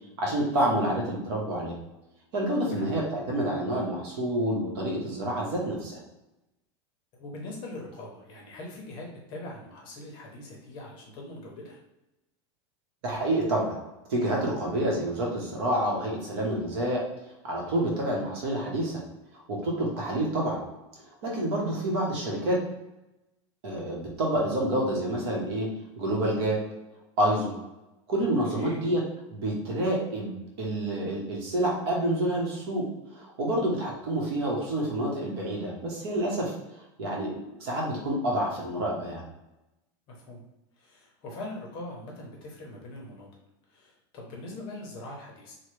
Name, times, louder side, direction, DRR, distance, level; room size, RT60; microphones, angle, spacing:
voice 1, 0.2-1.7 2.3-6.0 13.0-13.8 14.1-17.1 17.4-19.0 19.5-20.6 21.2-22.6 23.6-25.7 26.0-26.6 27.2-27.5 28.1-29.0 29.3-36.5 37.0-39.2, right 1 dB, 55° right, -2 dB, 1.0 m, -28 dB
voice 2, 7.2-11.8 28.5-28.8 40.1-40.4 40.8-43.3 43.7-45.6, left 2 dB, 30° left, -1 dB, 0.7 m, -41 dB
3.1 x 2.1 x 3.1 m, 0.96 s
supercardioid pair, 170°, 16 cm